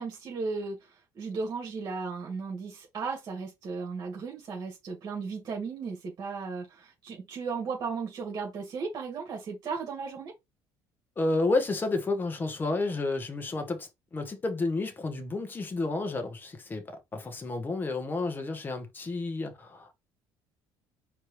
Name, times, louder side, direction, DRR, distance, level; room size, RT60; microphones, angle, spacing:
voice 1, 0.0-10.3, right 4 dB, 40° right, 2.1 m, -35 dB
voice 2, 11.2-19.9, left 3 dB, 20° left, 1.1 m, -31 dB
4.6 x 3.1 x 3.2 m
cardioid pair, 130°, 9 cm